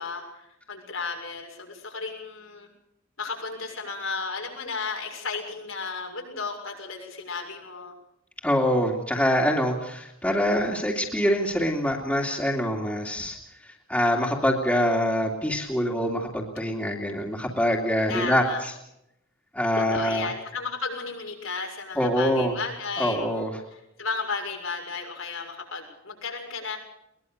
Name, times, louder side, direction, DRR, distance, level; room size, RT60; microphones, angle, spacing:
voice 1, 0.0-2.7 3.2-7.9 18.1-18.6 19.7-26.8, left 4 dB, 80° left, 2 dB, 6.8 m, -34 dB
voice 2, 8.4-13.4 13.9-18.7 19.5-20.3 22.0-22.5 23.0-23.5, equal, 5° left, -2 dB, 2.7 m, -24 dB
22.0 x 21.0 x 6.7 m, 0.82 s
head